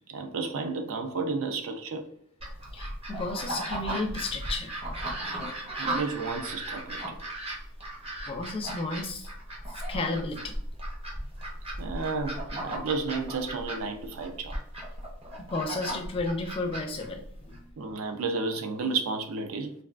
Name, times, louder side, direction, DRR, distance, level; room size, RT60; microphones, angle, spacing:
voice 1, 0.1-2.1 5.8-7.2 11.8-14.6 17.8-19.7, right 4 dB, 70° right, 0.4 m, -32 dB
sound 1, 2.4-17.6, right 1 dB, 25° right, 0.6 m, -36 dB
voice 2, 2.7-4.7 8.3-9.3 9.9-10.6 15.4-17.7, left 3 dB, 25° left, 0.3 m, -33 dB
3.3 x 2.4 x 2.4 m
head